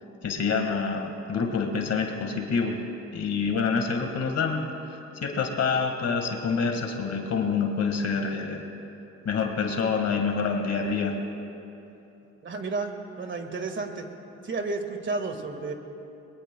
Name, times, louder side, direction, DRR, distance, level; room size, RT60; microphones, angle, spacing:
voice 1, 0.2-2.8 3.1-8.6 9.3-11.1, left 5 dB, 55° left, 3 dB, 1.8 m, -27 dB
voice 2, 12.4-14.0 14.4-15.7, right 3 dB, 40° right, 5 dB, 1.8 m, -32 dB
22.0 x 22.0 x 2.3 m, 2.9 s
cardioid pair, 90°, 30 cm